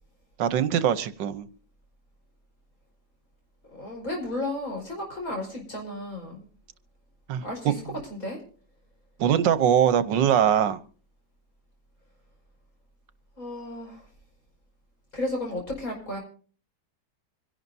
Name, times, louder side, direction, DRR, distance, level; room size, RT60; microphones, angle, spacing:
voice 1, 0.4-1.5 7.3-8.0 9.2-10.8, right 9 dB, 80° right, 1.5 m, -22 dB
voice 2, 3.7-6.4 7.4-7.8 8.1-8.4 13.4-14.0 15.1-16.2, left 1 dB, 50° left, 5.8 m, -33 dB
26.0 x 11.5 x 2.7 m
omnidirectional pair, 1.9 m